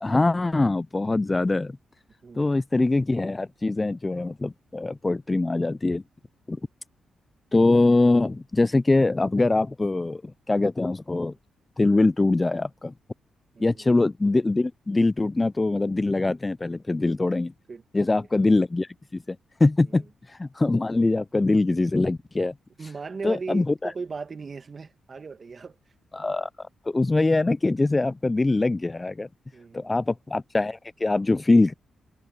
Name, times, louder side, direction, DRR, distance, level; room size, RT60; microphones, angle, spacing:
voice 1, 0.0-1.7 2.4-6.0 6.5-6.6 7.5-11.3 11.8-12.9 13.6-17.5 17.9-20.0 20.3-22.5 23.2-23.9 26.1-26.5 26.9-29.3 29.7-31.7, left 2 dB, 25° left, 0.4 m, -23 dB
voice 2, 2.2-2.6 13.5-14.0 17.7-18.3 19.9-20.0 22.8-25.8 29.5-29.9, right 4 dB, 45° right, 2.1 m, -38 dB
cardioid pair, 70°, 0 cm